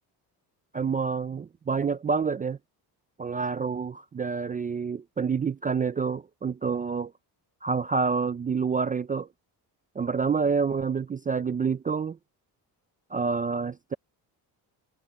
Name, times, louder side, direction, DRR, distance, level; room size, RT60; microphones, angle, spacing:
voice 1, 0.7-2.6 3.2-7.1 7.6-9.3 10.0-12.2 13.1-13.9, right 5 dB, 20° right, 0.3 m, -28 dB
cardioid pair, 135°, 41 cm